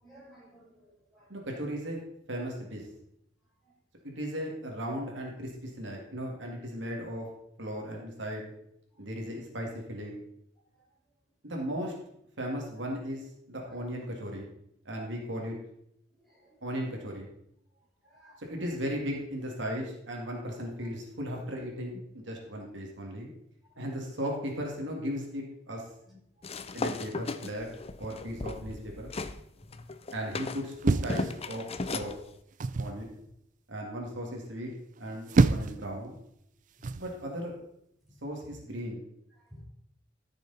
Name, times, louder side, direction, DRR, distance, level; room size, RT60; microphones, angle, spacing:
voice 1, 0.0-1.2 16.3-16.4 18.1-18.4 29.6-29.8 39.5-39.6, equal, ahead, -5 dB, 4.4 m, -54 dB
voice 2, 1.3-2.0 2.3-2.8 4.0-7.3 7.6-8.4 9.0-10.2 11.4-11.9 12.4-14.5 14.9-15.6 16.6-17.3 18.4-23.3 23.8-25.9 26.7-27.7 28.0-29.1 30.1-31.7 31.9-32.1 32.8-33.1 33.7-34.7 35.0-36.1 36.9-37.6 38.2-39.0, equal, 70° right, 0 dB, 2.4 m, -36 dB
sound 1, 26.4-29.4 29.7-32.1, left 3 dB, 30° left, 0.6 m, -36 dB
sound 2, 30.8-31.9 32.6-33.0 35.0-35.9 36.8-37.1, right 3 dB, 45° right, 0.4 m, -27 dB
14.0 x 6.8 x 4.2 m, 0.76 s
head